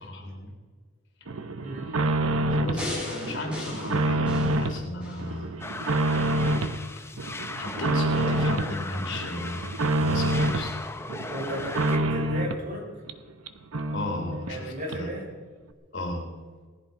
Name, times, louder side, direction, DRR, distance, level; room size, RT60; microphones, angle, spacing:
voice 1, 0.1-0.5 1.8-5.5 7.2-10.7 13.9-15.1 15.9-16.2, left 1 dB, 60° left, 2 dB, 3.4 m, -35 dB
sound 1, 1.3-2.9 3.2-4.8 5.2-6.8 7.2-8.7 9.1-10.7 11.1-12.7 13.1-13.2 13.5-13.6 13.7-14.6 14.9-15.0, right 1 dB, 90° right, 1.0 m, -27 dB
voice 2, 1.6-1.9 11.3-12.8 14.5-15.3, right 1 dB, 40° right, -3 dB, 6.5 m, -34 dB
sound 2, 2.8-5.3 5.8-5.9, left 1 dB, 5° right, 6.3 m, -36 dB
sound 3, 5.6-12.0, left 2 dB, 10° left, 0.8 m, -38 dB
19.0 x 14.5 x 4.6 m, 1.5 s
head